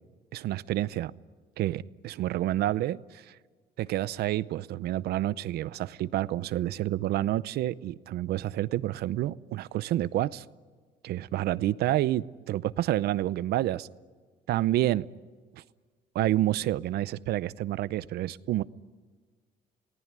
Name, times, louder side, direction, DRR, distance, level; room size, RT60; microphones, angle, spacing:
voice 1, 0.3-1.1 1.6-3.3 3.8-10.4 11.0-13.9 14.5-15.1 15.5-15.6 16.1-18.6, right 14 dB, 70° right, 0.7 m, -29 dB
28.5 x 19.0 x 9.6 m
cardioid pair, 110°, 17 cm